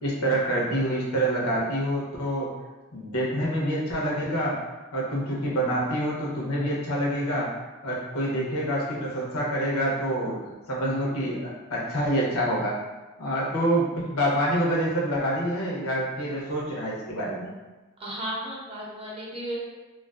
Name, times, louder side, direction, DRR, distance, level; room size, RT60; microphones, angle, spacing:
voice 1, 0.0-2.5 2.9-4.6 4.9-7.5 7.8-12.8 13.2-17.5, right 1 dB, 90° left, -4 dB, 0.7 m, -27 dB
voice 2, 18.0-19.6, right 1 dB, 25° right, -5 dB, 0.5 m, -34 dB
2.4 x 2.3 x 2.3 m, 1.2 s
head